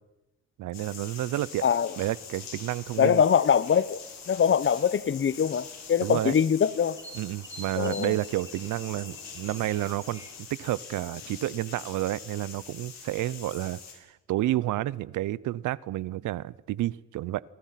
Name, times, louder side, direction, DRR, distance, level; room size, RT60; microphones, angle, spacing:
voice 1, 0.6-1.7 2.0-3.2 6.0-6.3 7.1-17.4, right 15 dB, 80° right, 0.8 m, -30 dB
sound 1, 0.7-13.9, left 6 dB, 60° left, 7.9 m, -44 dB
sound 2, 1.9-10.4, right 1 dB, 10° right, 5.8 m, -50 dB
voice 2, 3.0-4.0 4.3-7.0 7.8-8.1, left 7 dB, 40° left, 1.0 m, -23 dB
29.5 x 23.0 x 5.9 m
cardioid pair, 90°, 30 cm